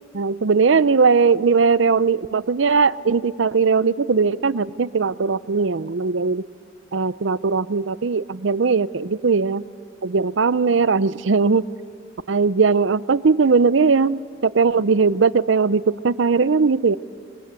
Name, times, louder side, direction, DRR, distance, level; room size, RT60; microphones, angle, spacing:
voice 1, 0.1-6.4 6.9-9.6 10.0-11.6 12.3-17.0, right 4 dB, 75° right, 16 dB, 0.6 m, -19 dB
26.5 x 23.5 x 8.2 m, 2.3 s
head